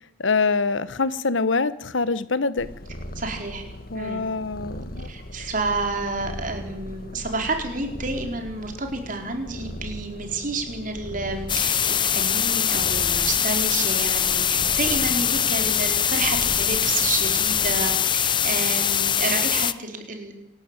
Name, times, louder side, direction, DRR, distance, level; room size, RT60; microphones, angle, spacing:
voice 1, 0.2-2.7 3.9-5.1, left 4 dB, 75° left, 16 dB, 1.1 m, -24 dB
Purr, 2.6-18.0, left 1 dB, 50° left, 1.6 m, -39 dB
voice 2, 3.1-3.6 3.9-4.2 5.0-20.3, right 3 dB, 40° right, 4 dB, 4.3 m, -30 dB
sound 1, 11.5-19.7, left 8 dB, 25° left, 0.7 m, -22 dB
27.0 x 12.5 x 9.0 m, 0.88 s
head